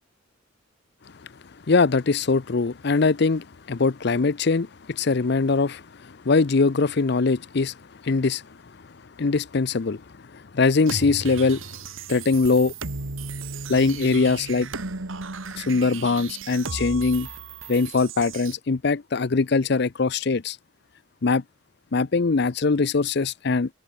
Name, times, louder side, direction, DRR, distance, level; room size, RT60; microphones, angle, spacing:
voice 1, 1.7-5.8 6.3-7.7 8.0-8.4 9.2-10.0 10.5-11.6 12.1-12.7 13.7-14.7 15.6-17.3 17.7-20.6 21.2-21.4 21.9-23.7, left 4 dB, 55° left, 0.6 m, -22 dB
sound 1, 10.9-18.5, right 4 dB, 75° right, 1.7 m, -35 dB
open air
head